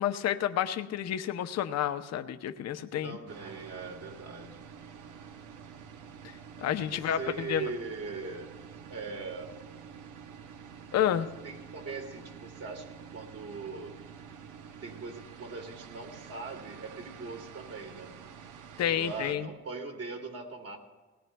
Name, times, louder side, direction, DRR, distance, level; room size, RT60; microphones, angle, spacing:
voice 1, 0.0-3.2 6.6-7.6 10.9-11.3 18.8-19.5, left 10 dB, 60° left, 8 dB, 0.6 m, -30 dB
voice 2, 3.0-4.7 6.9-8.5 8.9-9.5 11.1-11.2 11.4-13.9 14.8-18.2 18.9-20.8, right 4 dB, 55° right, 1 dB, 2.2 m, -40 dB
sound 1, 3.3-19.3, right 7 dB, 90° right, 0.9 m, -48 dB
19.5 x 17.5 x 2.2 m, 1.2 s
cardioid pair, 90°, 30 cm